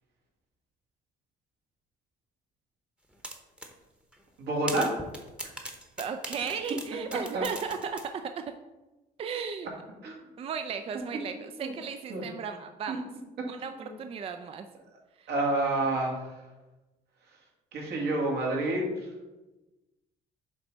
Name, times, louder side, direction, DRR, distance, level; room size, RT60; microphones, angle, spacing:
sound 1, 3.2-3.7 4.1-4.2 4.7-8.1, right 1 dB, 5° right, 0.9 m, -39 dB
voice 1, 4.4-4.9 7.3-7.4 10.0-10.2 11.6-11.7 12.1-12.2 12.9-13.0 13.8-13.9 15.3-16.3 17.7-19.1, right 2 dB, 75° right, -1 dB, 2.0 m, -28 dB
voice 2, 6.0-8.0 8.5-8.6 9.2-9.7 10.4-13.1 13.5-14.7 15.2-15.3, right 6 dB, 35° right, 7 dB, 0.4 m, -35 dB
7.2 x 3.3 x 5.2 m, 1.1 s
cardioid pair, 110°, 17 cm